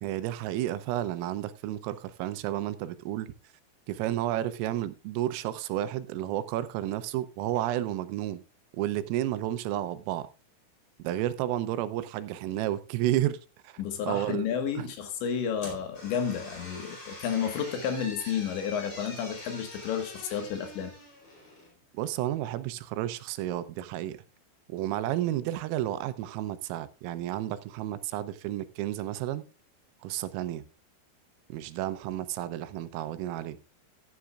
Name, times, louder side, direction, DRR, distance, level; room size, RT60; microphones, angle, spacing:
voice 1, 0.0-3.3 3.9-8.4 8.8-10.3 11.0-13.4 13.7-14.5 14.8-14.9 22.0-24.2 24.7-29.4 30.0-30.7 31.5-33.6, right 13 dB, 85° right, 3.5 m, -31 dB
voice 2, 13.8-20.9, left 7 dB, 70° left, 3.5 m, -31 dB
sound 1, 15.6-21.7, left 1 dB, 30° left, 4.6 m, -45 dB
14.5 x 10.5 x 2.4 m
omnidirectional pair, 6.0 m